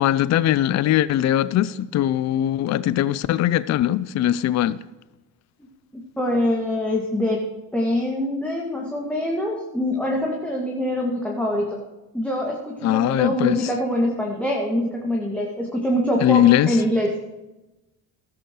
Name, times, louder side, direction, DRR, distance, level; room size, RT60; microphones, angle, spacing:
voice 1, 0.0-4.8 12.8-13.7 16.2-16.8, left 12 dB, 40° left, 0.5 m, -20 dB
voice 2, 5.9-11.8 12.1-17.1, left 1 dB, 5° left, 2.2 m, -24 dB
15.0 x 12.5 x 3.2 m
hypercardioid pair, 60°, 42 cm